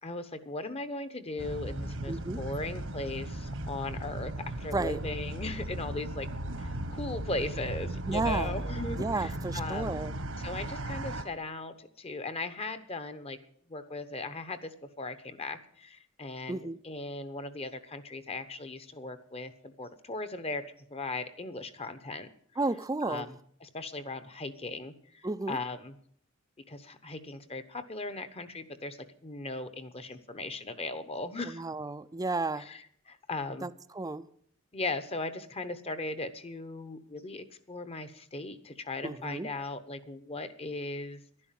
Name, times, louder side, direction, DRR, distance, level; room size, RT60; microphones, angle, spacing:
voice 1, 0.0-6.3 6.6-10.0 10.4-13.4 13.7-20.6 20.9-22.3 23.0-25.9 26.7-31.6 32.6-33.7 34.7-41.2, left 2 dB, 30° left, 11 dB, 1.0 m, -38 dB
sound 1, 1.4-11.2, right 1 dB, 80° right, 1.7 m, -36 dB
voice 2, 2.1-2.4 4.7-5.0 8.0-8.5 9.0-10.1 16.5-16.8 22.6-23.3 25.2-25.6 31.5-32.7 33.6-34.2 39.0-39.5, right 3 dB, 20° right, 14 dB, 0.5 m, -32 dB
11.5 x 11.0 x 7.5 m, 0.62 s
head